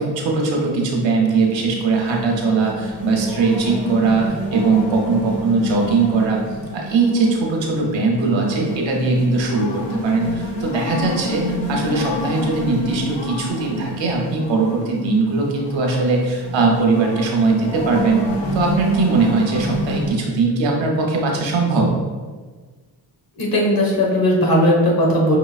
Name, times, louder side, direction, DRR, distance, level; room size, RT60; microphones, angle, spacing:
voice 1, 0.0-6.4 6.7-18.2 18.5-21.9, right 3 dB, 85° right, 0 dB, 0.9 m, -20 dB
sound 1, 1.3-20.1, equal, 75° left, 1.1 m, -29 dB
voice 2, 23.4-25.4, equal, 50° left, -3 dB, 1.4 m, -17 dB
5.8 x 3.0 x 2.4 m, 1.4 s
cardioid pair, 60°, 44 cm